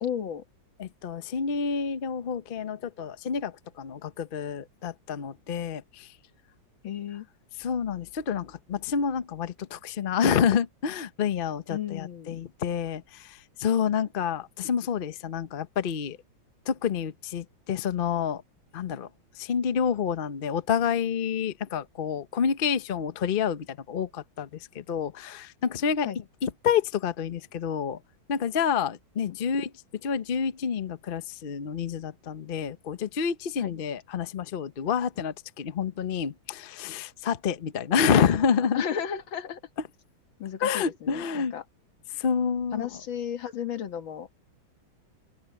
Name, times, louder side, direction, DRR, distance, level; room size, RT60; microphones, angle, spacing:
voice 1, 0.0-0.4 6.8-7.3 11.7-12.4 26.0-26.2 29.3-29.4 33.6-33.7 37.9-39.6 40.4-41.6 42.7-44.5, left 9 dB, 65° left, 2.2 m, -34 dB
voice 2, 0.8-6.1 7.6-13.3 13.6-16.2 16.7-18.4 18.7-19.1 19.4-24.5 24.7-26.1 26.4-28.0 28.3-29.7 30.0-38.8 40.6-41.5 42.2-42.9, left 7 dB, 85° left, 0.4 m, -28 dB
open air
omnidirectional pair, 2.4 m